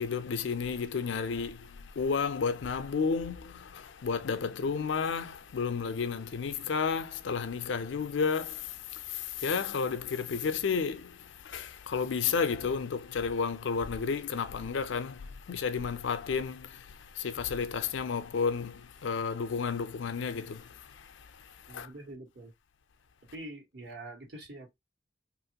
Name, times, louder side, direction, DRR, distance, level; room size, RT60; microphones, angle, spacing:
voice 1, 0.0-21.9, left 5 dB, 75° left, 0.4 m, -32 dB
voice 2, 21.7-22.5 23.3-24.7, right 1 dB, 60° right, 1.3 m, -45 dB
2.9 x 2.5 x 2.8 m
head